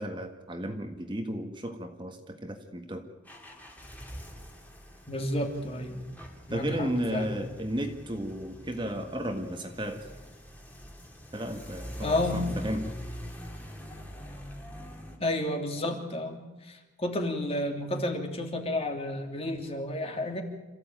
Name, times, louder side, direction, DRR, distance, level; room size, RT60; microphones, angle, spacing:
voice 1, 0.0-3.1 6.5-10.1 11.3-12.9, equal, 25° right, 5 dB, 1.7 m, -34 dB
sound 1, 3.2-15.2, equal, 10° left, 2.9 m, -43 dB
voice 2, 5.1-6.0 6.5-7.3 12.0-12.6 15.2-20.4, left 1 dB, 30° left, 4 dB, 2.9 m, -31 dB
27.0 x 15.0 x 9.1 m, 1.2 s
head